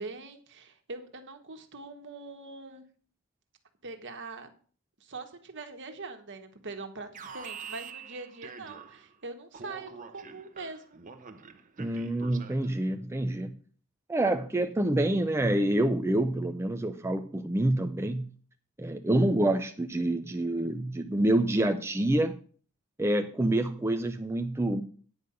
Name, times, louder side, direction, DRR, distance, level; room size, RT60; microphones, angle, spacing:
voice 1, 0.0-2.8 3.8-4.5 5.0-11.0, right 3 dB, 55° right, 6 dB, 1.5 m, -42 dB
Alarm, 7.1-9.2 9.5-12.8, right 6 dB, 40° right, 0.9 m, -46 dB
voice 2, 11.8-13.6 14.1-18.3 18.8-22.4 23.0-24.8, right 1 dB, 10° right, 6 dB, 0.5 m, -27 dB
9.5 x 5.4 x 7.9 m, 0.43 s
head